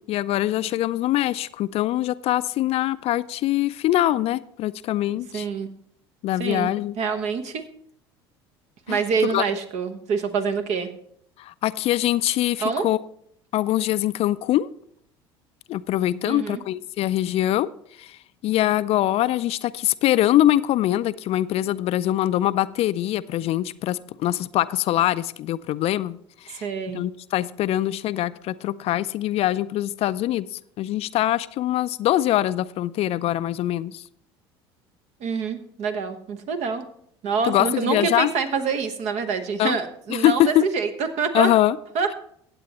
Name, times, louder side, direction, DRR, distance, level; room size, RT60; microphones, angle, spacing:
voice 1, 0.0-5.5 6.2-6.9 8.9-9.0 9.3-9.4 11.4-13.0 13.5-14.7 15.7-17.7 18.0-18.2 18.4-26.7 26.9-30.5 30.8-34.0 37.4-38.3 39.6-39.8 40.1-40.7 41.3-41.8, left 13 dB, 50° left, 0.4 m, -23 dB
voice 2, 5.3-5.7 6.4-6.7 7.0-7.6 8.9-10.9 12.6-12.9 16.2-16.6 26.5-27.0 35.2-36.8 37.2-41.5 41.9-42.1, right 5 dB, 55° right, 1.2 m, -26 dB
15.5 x 8.2 x 3.0 m
hypercardioid pair, 70°, 13 cm